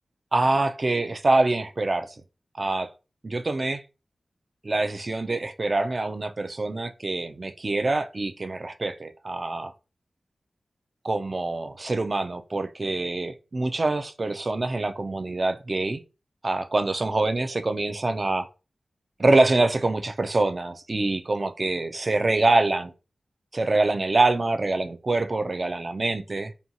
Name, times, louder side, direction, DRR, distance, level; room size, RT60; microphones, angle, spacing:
voice 1, 0.3-2.2 2.5-2.9 3.2-3.8 4.6-9.7 11.0-16.0 16.4-18.5 19.2-22.9 23.5-26.5, right 2 dB, 45° right, 0.3 m, -25 dB
2.6 x 2.2 x 2.7 m
cardioid pair, 60°, 0 cm